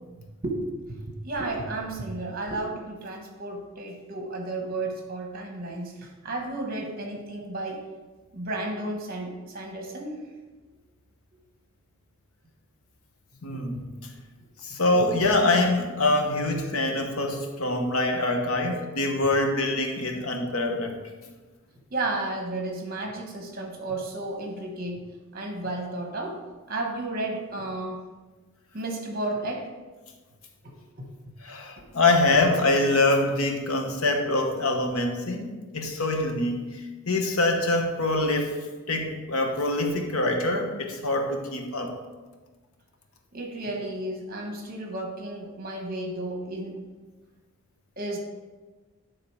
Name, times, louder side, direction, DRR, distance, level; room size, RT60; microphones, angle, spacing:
voice 1, 1.2-7.8 8.3-10.1 13.5-13.7 21.9-25.0 25.3-26.4 26.7-28.0 28.7-29.7 30.6-31.1 31.8-31.9 43.3-46.8 48.0-48.2, right 2 dB, 40° right, 1 dB, 1.2 m, -33 dB
voice 2, 13.4-13.8 14.6-21.0 31.4-41.9, left 2 dB, 75° left, 4 dB, 1.0 m, -25 dB
9.8 x 3.8 x 4.8 m, 1.3 s
head